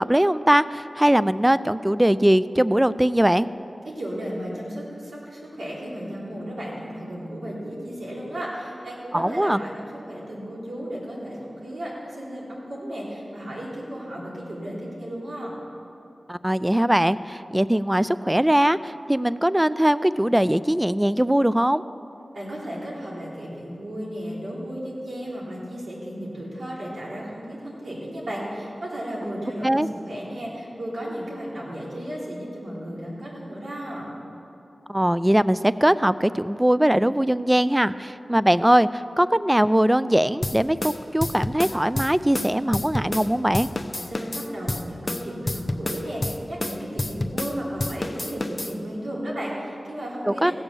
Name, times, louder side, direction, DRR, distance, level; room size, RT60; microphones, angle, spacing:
voice 1, 0.0-3.5 9.1-9.6 16.3-21.8 29.6-29.9 34.9-43.7 50.3-50.5, right 1 dB, 10° right, 16 dB, 0.3 m, -21 dB
voice 2, 3.8-15.5 22.3-34.1 43.9-50.5, equal, 85° right, -5 dB, 3.3 m, -34 dB
sound 1, 40.4-43.3 43.5-47.5 47.8-48.7, left 2 dB, 35° left, 0.7 m, -29 dB
16.5 x 7.2 x 6.8 m, 2.9 s
wide cardioid pair, 65°, 0 cm